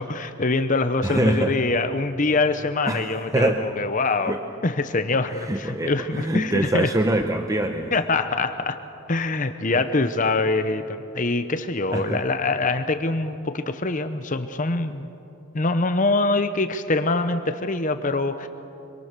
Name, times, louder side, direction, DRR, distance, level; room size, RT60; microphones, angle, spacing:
voice 1, 0.0-4.4 4.6-6.9 7.9-8.8 9.1-15.1 15.5-18.5, left 3 dB, 40° left, 9 dB, 0.9 m, -24 dB
voice 2, 1.0-1.6 2.9-3.7 4.2-4.4 5.3-7.9 11.9-12.2, right 1 dB, 15° right, 5 dB, 0.8 m, -24 dB
26.0 x 23.5 x 6.8 m, 2.7 s
head